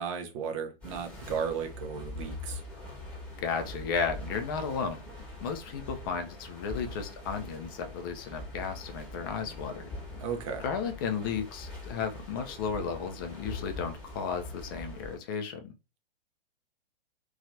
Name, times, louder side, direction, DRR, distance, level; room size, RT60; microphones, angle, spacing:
voice 1, 0.0-2.6 10.2-10.6, right 6 dB, 35° right, 0.5 m, -35 dB
sound 1, 0.8-15.2, left 2 dB, 5° left, 1.1 m, -43 dB
voice 2, 3.4-5.0 5.4-9.9 10.6-15.7, left 6 dB, 25° left, 0.3 m, -34 dB
2.6 x 2.3 x 2.6 m
figure-of-eight pair, 110°, 29 cm